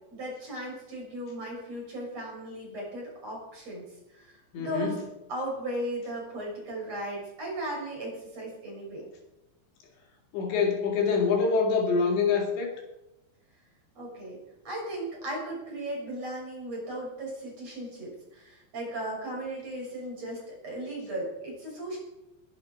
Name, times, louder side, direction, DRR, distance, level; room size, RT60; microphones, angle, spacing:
voice 1, 0.1-5.0 5.3-9.1 14.0-14.4 14.6-22.0, right 1 dB, 35° right, -3 dB, 7.3 m, -36 dB
voice 2, 4.5-5.0 10.3-12.7, left 5 dB, 75° left, 1 dB, 4.4 m, -25 dB
21.0 x 11.5 x 4.6 m, 0.93 s
omnidirectional pair, 5.3 m